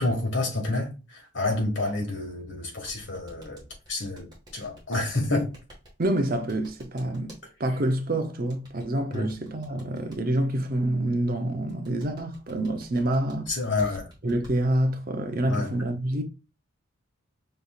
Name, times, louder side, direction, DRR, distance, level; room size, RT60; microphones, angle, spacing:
voice 1, 0.0-5.5 9.1-9.3 13.5-14.1 15.5-15.7, left 2 dB, 60° left, 1.5 m, -29 dB
sound 1, 2.9-7.4 8.5-10.2 11.7-14.5, equal, 20° right, 1.5 m, -49 dB
voice 2, 6.0-7.3 7.6-13.5 14.2-16.2, right 1 dB, 40° right, 0.6 m, -27 dB
5.5 x 3.4 x 2.3 m
head